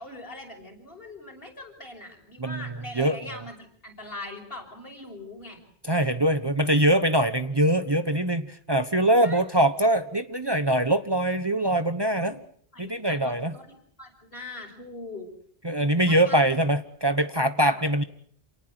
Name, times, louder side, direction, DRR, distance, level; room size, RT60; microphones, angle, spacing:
voice 1, 0.0-5.6 9.2-9.4 12.2-12.4 12.7-13.7 14.0-15.3 16.1-16.4 17.6-17.7, left 2 dB, 65° left, 3 dB, 5.9 m, -41 dB
voice 2, 2.4-2.7 3.0-3.4 5.8-12.4 12.8-13.5 15.6-18.0, right 1 dB, 25° right, 10 dB, 1.1 m, -23 dB
28.0 x 19.0 x 8.0 m, 0.62 s
omnidirectional pair, 1.0 m